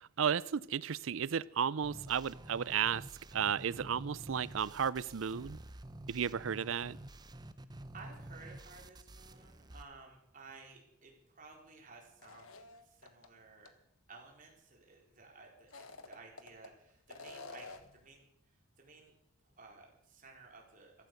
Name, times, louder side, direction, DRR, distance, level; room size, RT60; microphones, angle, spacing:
voice 1, 0.0-3.0 3.3-5.6 6.1-7.0, right 7 dB, 70° right, 21 dB, 0.5 m, -34 dB
sound 1, 1.8-9.8, right 1 dB, 20° right, 0.8 m, -50 dB
voice 2, 7.9-13.7 14.1-19.1 19.6-20.9, right 4 dB, 40° right, 0 dB, 4.2 m, -56 dB
sound 2, 12.2-13.3 13.7-13.8 15.6-16.7 17.1-18.0, left 3 dB, 90° left, 1.4 m, -50 dB
15.0 x 13.5 x 6.6 m, 0.76 s
head